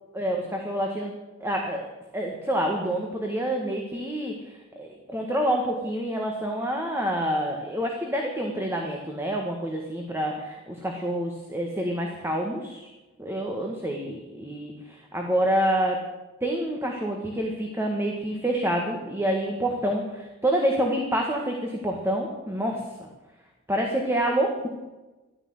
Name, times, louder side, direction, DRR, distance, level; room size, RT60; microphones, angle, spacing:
voice 1, 0.1-1.1 1.4-1.8 2.1-12.9 13.2-16.0 16.4-23.1 23.7-24.7, right 1 dB, 10° right, 1 dB, 1.7 m, -27 dB
13.5 x 12.5 x 8.0 m, 1.1 s
head